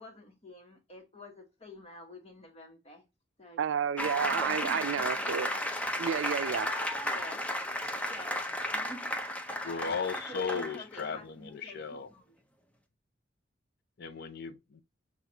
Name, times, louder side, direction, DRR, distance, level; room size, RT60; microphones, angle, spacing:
voice 1, 0.0-3.0 3.4-3.6 4.0-6.0 7.0-7.4 8.1-9.9 10.3-12.4, left 1 dB, 35° left, 1.1 m, -49 dB
voice 2, 3.6-5.5 6.0-6.7 7.8-7.9, right 7 dB, 80° right, 0.4 m, -31 dB
sound 1, 4.0-11.1, left 1 dB, 5° left, 0.5 m, -34 dB
voice 3, 9.6-12.1 14.0-14.8, left 5 dB, 55° left, 0.5 m, -36 dB
5.8 x 2.4 x 2.7 m
head